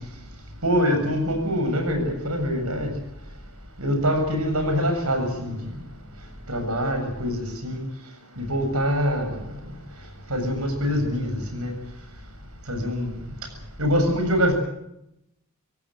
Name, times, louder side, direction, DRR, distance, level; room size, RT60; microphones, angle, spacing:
voice 1, 0.6-2.9 3.8-5.6 6.5-7.8 8.4-9.4 10.3-11.7 12.7-13.1 13.8-14.5, equal, 90° right, 6 dB, 7.6 m, -24 dB
26.0 x 17.5 x 7.7 m, 0.81 s
head